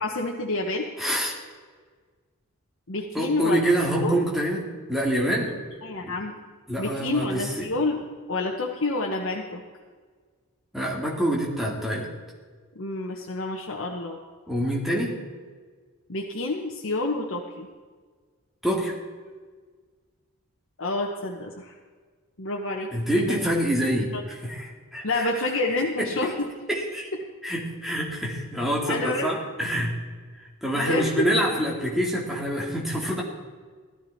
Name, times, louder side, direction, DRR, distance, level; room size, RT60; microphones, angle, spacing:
voice 1, 0.0-0.9 2.9-3.6 4.0-4.3 5.8-6.3 6.8-8.0 8.3-9.6 12.7-14.2 16.1-17.7 20.8-21.7 22.4-22.9 23.1-23.4 24.1-24.2 25.0-26.5 28.9-29.3 30.7-31.3, left 2 dB, 60° left, -1 dB, 1.2 m, -28 dB
voice 2, 1.0-1.4 3.1-5.6 6.0-6.1 6.7-7.7 10.7-12.1 14.5-15.2 18.6-19.0 22.9-25.3 26.0-26.3 26.7-27.1 27.4-29.9 30.6-33.2, equal, ahead, -3 dB, 2.4 m, -26 dB
17.0 x 12.5 x 4.2 m, 1.5 s
head